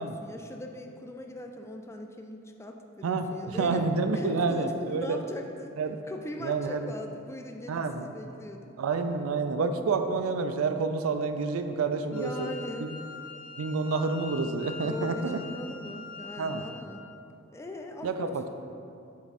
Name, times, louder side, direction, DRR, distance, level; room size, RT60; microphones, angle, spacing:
voice 1, 0.0-3.9 4.1-5.7 6.1-8.7 11.5-11.6 12.1-12.9 14.8-17.0 17.5-18.3, left 1 dB, 15° left, 3 dB, 0.3 m, -40 dB
voice 2, 3.0-5.2 5.8-6.0 6.4-6.9 7.7-8.1 8.8-12.5 12.8-13.0 13.6-15.4 16.4-16.6 18.0-18.5, right 4 dB, 75° right, 8 dB, 0.4 m, -29 dB
Wind instrument woodwind instrument, 12.1-17.0, left 4 dB, 80° left, 0.9 m, -44 dB
7.4 x 3.5 x 4.0 m, 2.6 s
head